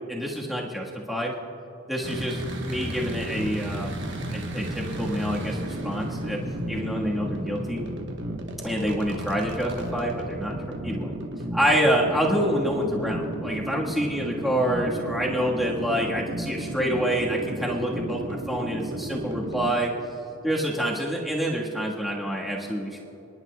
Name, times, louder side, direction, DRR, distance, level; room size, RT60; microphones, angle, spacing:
voice 1, 0.1-1.4 1.9-3.9 4.3-5.6 5.8-6.4 6.7-7.8 8.6-10.5 10.8-11.1 11.5-19.9 20.4-23.0, equal, ahead, -4 dB, 1.5 m, -27 dB
sound 1, 2.0-19.7, right 1 dB, 55° right, 1.2 m, -33 dB
29.0 x 10.5 x 2.3 m, 3.0 s
head